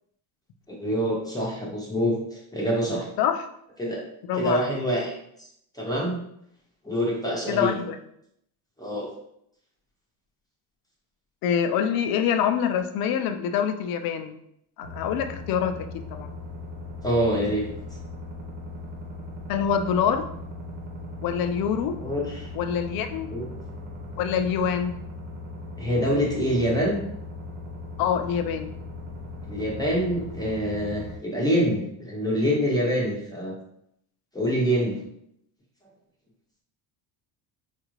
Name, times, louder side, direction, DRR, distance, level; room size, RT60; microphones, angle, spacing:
voice 1, 0.7-3.1 3.8-4.0 4.3-5.1 5.7-6.2 6.8-7.8 8.8-9.1 17.0-17.7 22.0-22.5 23.3-23.5 25.8-27.0 29.5-33.5 34.3-35.0, equal, 10° left, -4 dB, 0.6 m, -25 dB
voice 2, 4.3-4.7 7.5-8.0 11.4-14.4 14.8-15.9 16.1-16.3 19.5-20.3 21.2-22.0 22.5-23.3 24.2-25.0 28.0-28.7, left 8 dB, 50° left, 7 dB, 0.5 m, -25 dB
sound 1, 14.8-31.2, left 2 dB, 75° right, 1.1 m, -38 dB
4.5 x 2.5 x 3.0 m, 0.74 s
cardioid pair, 140°, 48 cm